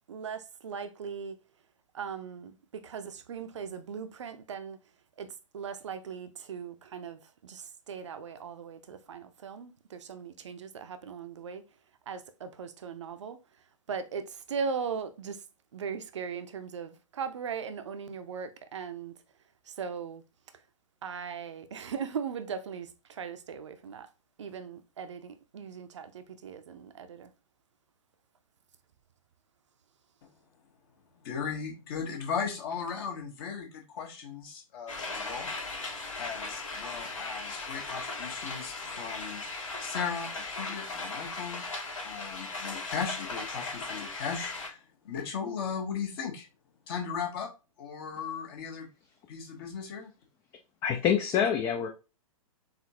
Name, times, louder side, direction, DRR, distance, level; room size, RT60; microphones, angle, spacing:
voice 1, 0.1-1.4 1.9-4.8 5.2-11.6 12.1-13.4 13.9-15.4 15.7-19.2 19.6-20.2 21.0-24.1 24.4-27.3, right 6 dB, 55° right, 0.6 m, -39 dB
voice 2, 31.2-35.5 36.2-39.4 39.8-41.7 42.0-46.5 46.9-47.5 47.8-48.9 49.3-50.1, left 6 dB, 40° left, 1.3 m, -37 dB
sound 1, 34.9-44.7, left 3 dB, 65° left, 1.7 m, -38 dB
voice 3, 50.8-51.9, left 8 dB, 20° left, 0.4 m, -26 dB
4.1 x 3.8 x 2.7 m
figure-of-eight pair, 110°, 18 cm